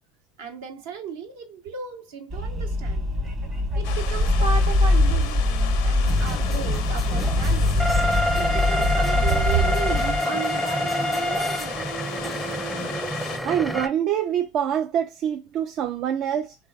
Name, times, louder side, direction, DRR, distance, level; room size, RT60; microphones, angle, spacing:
voice 1, 0.4-3.1 3.8-7.9 8.3-11.9, right 6 dB, 75° right, 0.9 m, -35 dB
sound 1, 2.3-10.2, left 1 dB, 35° right, 1.1 m, -23 dB
sound 2, 3.8-13.4, left 9 dB, 65° left, 0.5 m, -36 dB
sound 3, 6.1-13.9, left 1 dB, ahead, 0.5 m, -27 dB
voice 2, 13.4-16.6, right 9 dB, 50° right, 0.3 m, -25 dB
3.3 x 2.1 x 2.3 m
hypercardioid pair, 80°, 0 cm